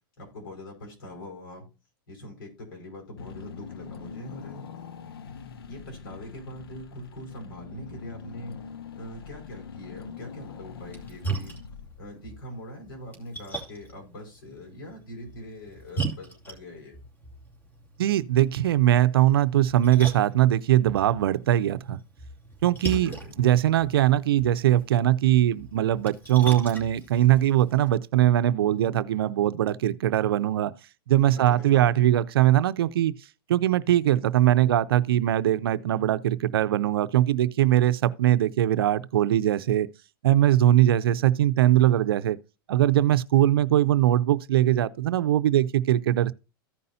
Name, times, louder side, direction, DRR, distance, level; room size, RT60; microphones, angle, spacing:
voice 1, 0.2-1.7 2.1-4.7 5.7-8.6 9.0-11.5 12.0-17.0 22.9-23.3 31.3-31.9, left 1 dB, 65° left, 5.4 m, -42 dB
Car / Engine, 3.2-12.3, left 6 dB, 85° left, 0.8 m, -43 dB
Splash splatter, 10.8-27.9, right 3 dB, 15° left, 2.7 m, -40 dB
voice 2, 18.0-22.0 22.6-23.1 23.4-30.7 31.1-33.1 33.5-39.9 40.2-42.4 42.7-46.3, right 12 dB, 80° right, 0.6 m, -21 dB
15.0 x 5.4 x 2.7 m
hypercardioid pair, 130°, 12 cm